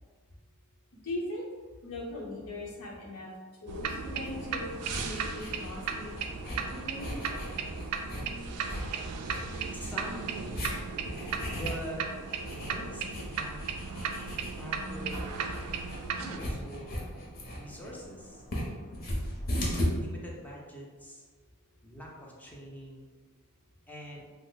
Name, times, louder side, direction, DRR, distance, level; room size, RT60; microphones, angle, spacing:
voice 1, 1.0-1.5 1.8-3.3 3.6-6.1 6.7-7.2, left 1 dB, 80° left, -3 dB, 0.8 m, -39 dB
sound 1, 3.7-16.4, right 5 dB, 85° right, 0.3 m, -36 dB
sound 2, 4.3-19.9, equal, 40° left, 0.7 m, -38 dB
voice 2, 9.7-10.7 11.4-12.1 12.4-13.6 14.6-15.4 16.2-17.1 17.5-18.4 19.9-21.2 21.8-23.1 23.9-24.3, equal, 5° left, -3 dB, 0.4 m, -44 dB
2.9 x 2.0 x 3.8 m, 1.5 s
head